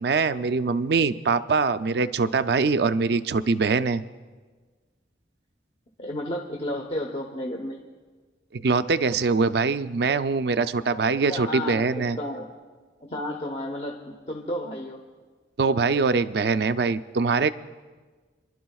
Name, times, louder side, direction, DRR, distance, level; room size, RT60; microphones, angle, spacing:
voice 1, 0.0-4.0 8.5-12.2 15.6-17.5, right 4 dB, 60° right, 12 dB, 0.4 m, -23 dB
voice 2, 6.0-7.9 11.3-12.4 13.0-15.0, left 1 dB, 35° left, 0 dB, 0.9 m, -32 dB
28.0 x 11.5 x 2.4 m, 1.4 s
head